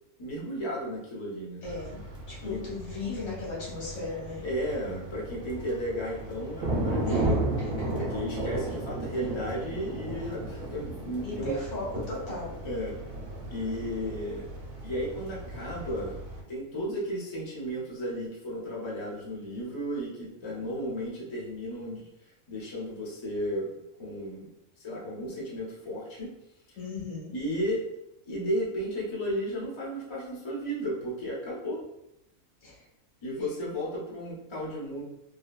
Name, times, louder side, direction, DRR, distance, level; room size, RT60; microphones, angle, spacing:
voice 1, 0.2-1.6 2.4-2.6 4.4-7.4 7.9-11.6 12.6-13.0 13.5-14.4 14.8-16.2 16.5-22.1 22.5-23.7 24.0-24.5 24.8-26.3 26.7-26.8 27.3-27.8 28.3-31.8 33.2-35.0, equal, 30° left, -5 dB, 0.6 m, -34 dB
voice 2, 1.6-2.0 2.3-4.4 7.0-7.3 7.6-7.9 11.2-12.5 26.8-27.3 32.6-32.8, left 3 dB, 75° left, -5 dB, 1.5 m, -36 dB
sound 1, 1.6-16.4, right 1 dB, 50° right, 0.8 m, -35 dB
3.3 x 2.2 x 2.3 m, 0.84 s
omnidirectional pair, 1.4 m